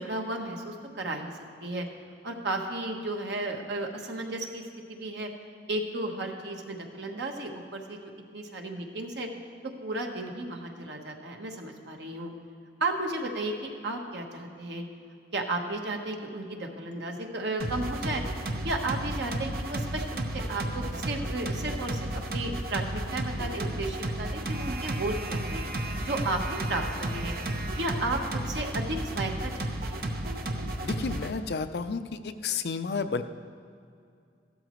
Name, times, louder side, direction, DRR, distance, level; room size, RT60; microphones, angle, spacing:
voice 1, 0.0-1.3 1.6-1.9 2.2-4.6 4.9-5.3 5.7-8.0 8.3-9.3 9.8-12.3 12.8-14.8 15.3-18.2 18.6-25.6 26.0-27.3 27.7-30.1, right 2 dB, 75° right, 2 dB, 1.2 m, -33 dB
sound 1, 17.6-31.3, right 1 dB, 55° right, 0.8 m, -33 dB
voice 2, 30.8-33.2, left 5 dB, 65° left, 10 dB, 0.5 m, -31 dB
15.0 x 12.5 x 3.1 m, 2.4 s
head